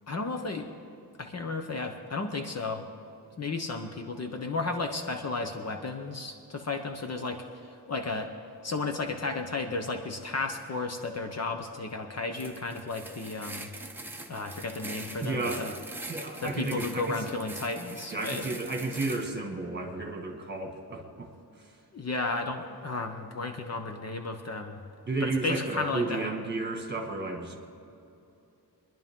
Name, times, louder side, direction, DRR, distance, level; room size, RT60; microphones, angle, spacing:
voice 1, 0.1-0.7 1.2-2.8 3.4-8.3 8.6-13.7 14.3-15.7 16.4-18.4 21.9-24.8 25.2-26.3, left 3 dB, 40° left, 5 dB, 0.9 m, -33 dB
sound 1, 12.3-19.4, right 2 dB, 5° right, 0.8 m, -43 dB
voice 2, 15.2-15.7 16.1-17.3 18.1-21.8 25.1-27.5, right 3 dB, 25° right, 2 dB, 1.9 m, -33 dB
23.5 x 10.5 x 3.7 m, 2.7 s
wide cardioid pair, 160°, 39 cm